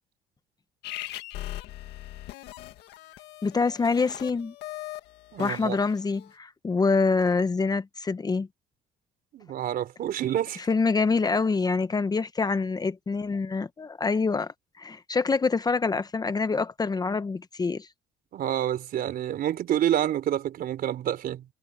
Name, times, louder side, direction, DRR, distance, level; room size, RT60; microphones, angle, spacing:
sound 1, 0.8-6.3, left 15 dB, 80° left, 1.9 m, -40 dB
voice 1, 3.4-4.5 5.4-8.5 10.7-17.9, left 4 dB, 25° left, 0.9 m, -26 dB
voice 2, 5.3-5.8 9.3-10.6 18.3-21.5, right 11 dB, 60° right, 3.8 m, -28 dB
cardioid pair, 110°, 17 cm